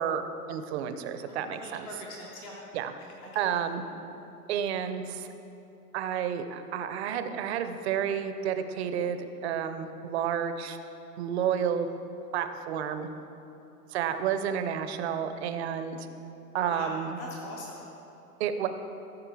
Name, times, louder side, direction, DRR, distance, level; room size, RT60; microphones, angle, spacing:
voice 1, 0.0-1.9 2.7-2.9 3.3-3.8 4.5-5.3 5.9-10.8 11.2-11.9 12.3-13.1 13.9-16.1 16.5-17.2 18.4-18.7, right 8 dB, 45° right, 9 dB, 0.7 m, -30 dB
voice 2, 1.3-2.6 3.2-3.4 16.6-17.8, left 1 dB, 10° left, -4 dB, 0.3 m, -41 dB
13.5 x 6.2 x 4.7 m, 2.9 s
hypercardioid pair, 145°, 47 cm